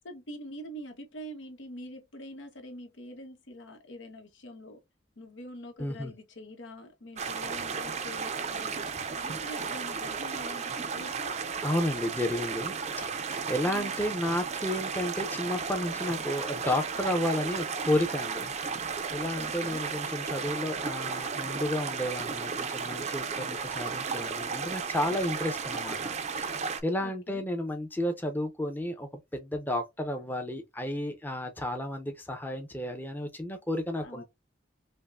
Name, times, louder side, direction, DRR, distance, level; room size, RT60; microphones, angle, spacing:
voice 1, 0.0-4.8 5.2-8.9 9.1-11.4 13.6-13.9 19.4-19.9 27.0-27.4 34.0-34.2, equal, 90° left, 1.0 m, -45 dB
voice 2, 5.8-6.1 11.6-12.7 13.2-18.5 19.1-26.1 26.5-34.2, left 1 dB, 10° left, 0.6 m, -32 dB
sound 1, 7.2-26.8, right 5 dB, 35° right, 0.4 m, -34 dB
5.4 x 2.1 x 2.4 m
head